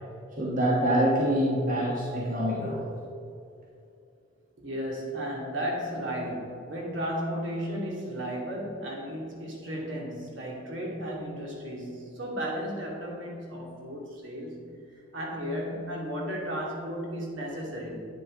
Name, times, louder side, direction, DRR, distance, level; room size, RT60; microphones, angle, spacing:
voice 1, 0.4-2.9, equal, 40° right, -4 dB, 1.3 m, -25 dB
voice 2, 4.6-14.7 15.1-18.1, equal, 70° right, -2 dB, 2.4 m, -34 dB
10.5 x 8.8 x 3.8 m, 2.6 s
head